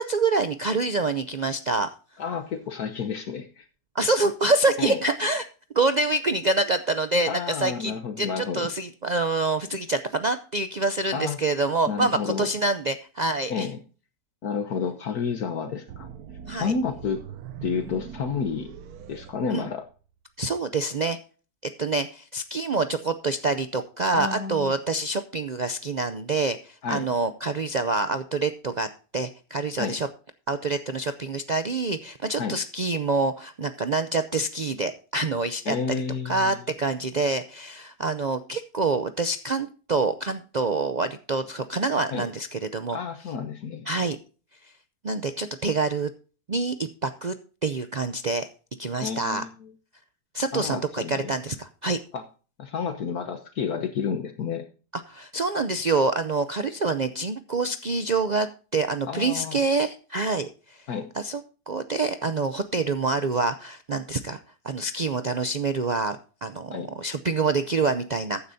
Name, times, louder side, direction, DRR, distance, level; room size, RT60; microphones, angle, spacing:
voice 1, 0.0-1.9 3.9-5.5 5.7-13.7 16.4-16.7 19.5-19.7 20.4-21.2 21.6-30.1 30.5-43.0 43.9-44.2 45.0-46.1 46.5-47.4 47.6-48.5 48.8-49.4 50.3-52.0 54.9-60.9 61.1-64.4 64.6-68.4, right 3 dB, 90° right, 10 dB, 0.3 m, -26 dB
voice 2, 2.2-3.7 4.8-5.0 7.3-8.7 11.1-11.4 11.9-12.5 13.5-13.8 14.4-16.1 16.6-17.2 17.6-18.7 19.1-19.8 24.1-24.7 26.8-27.1 29.8-29.9 32.4-32.6 35.7-36.6 42.1-42.3 42.9-43.9 49.0-49.7 50.5-51.3 52.1-52.2 52.6-54.6 59.1-59.6 60.9-61.1 66.7-66.9, left 6 dB, 70° left, 7 dB, 1.5 m, -30 dB
sound 1, 15.9-20.1, right 8 dB, 70° right, 1.2 m, -42 dB
14.5 x 9.9 x 2.7 m, 0.37 s
omnidirectional pair, 1.7 m